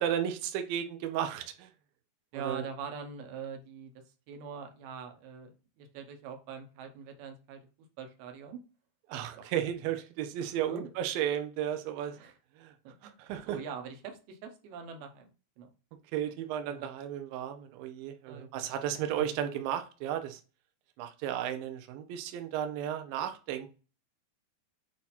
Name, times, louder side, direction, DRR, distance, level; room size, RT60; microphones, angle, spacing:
voice 1, 0.0-1.7 2.3-2.6 9.1-12.2 12.6-12.7 13.0-13.6 16.1-20.4 21.0-23.7, right 10 dB, 85° right, 6 dB, 2.0 m, -34 dB
voice 2, 2.3-7.6 8.0-8.6 9.4-9.5 10.7-10.9 12.1-12.4 12.8-13.1 13.5-15.3 15.6-15.7 16.6-16.9 18.3-18.6 18.9-19.3, right 6 dB, 70° right, 5 dB, 2.6 m, -43 dB
8.3 x 2.8 x 4.2 m, 0.34 s
omnidirectional pair, 5.1 m